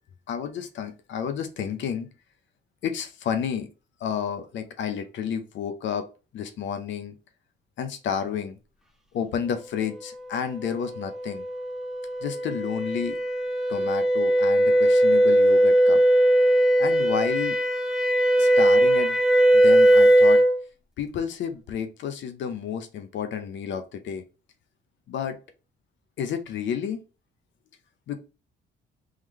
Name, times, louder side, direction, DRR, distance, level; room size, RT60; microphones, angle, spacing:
voice 1, 0.3-2.1 2.8-3.7 4.0-6.1 6.3-7.2 7.8-8.6 9.1-11.4 12.2-13.2 13.7-16.0 16.8-17.6 18.4-19.2 19.5-20.4 21.0-24.2 25.1-25.4 26.2-27.0 28.1-28.2, left 8 dB, 70° left, 8 dB, 0.6 m, -31 dB
sound 1, 10.6-20.6, right 1 dB, ahead, 0.6 m, -19 dB
3.8 x 3.1 x 3.1 m, 0.32 s
cardioid pair, 90°, 20 cm